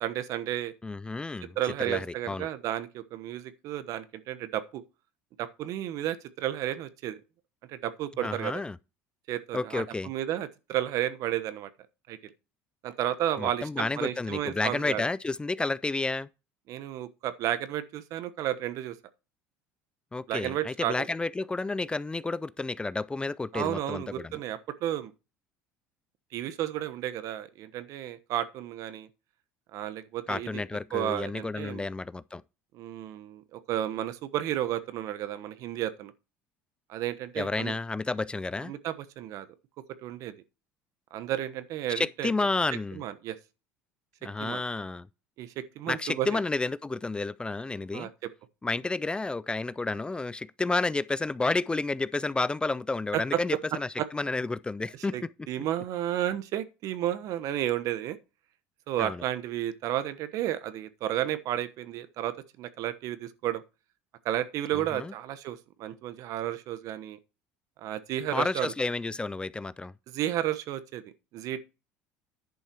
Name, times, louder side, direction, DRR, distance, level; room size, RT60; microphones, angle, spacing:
voice 1, 0.0-0.7 1.6-4.8 5.4-7.2 7.7-8.6 9.3-11.7 12.1-12.3 12.8-15.0 16.7-19.0 20.3-20.9 23.5-25.1 26.3-29.1 29.7-30.6 30.9-31.8 32.7-36.1 36.9-37.7 38.6-39.5 40.0-40.3 41.1-42.3 42.9-43.4 44.4-44.6 45.4-46.4 47.9-48.1 53.1-53.4 54.0-54.1 55.1-58.2 58.9-63.6 64.2-67.2 67.8-68.7 70.1-71.0 71.3-71.6, right 12 dB, 65° right, 1.1 m, -32 dB
voice 2, 0.8-2.5 8.2-8.8 9.5-10.1 13.4-16.3 20.1-24.3 30.3-32.4 37.4-38.7 42.0-43.0 44.2-45.1 45.9-48.1 48.6-55.1 59.0-59.2 64.7-65.1 68.3-69.9, left 3 dB, 15° left, 0.4 m, -31 dB
10.5 x 5.7 x 4.5 m
supercardioid pair, 85°, 6 cm